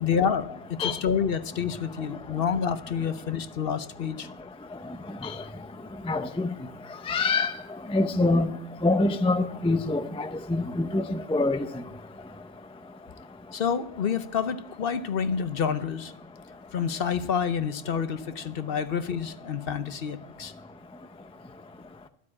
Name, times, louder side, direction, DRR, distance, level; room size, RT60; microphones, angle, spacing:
voice 1, 0.0-4.3 13.5-16.1 16.7-20.5, left 7 dB, 55° left, 0.9 m, -28 dB
voice 2, 6.1-6.5 7.1-7.5 7.9-8.5 8.8-11.7, left 2 dB, 10° left, 0.4 m, -25 dB
12.5 x 8.4 x 8.7 m
omnidirectional pair, 1.2 m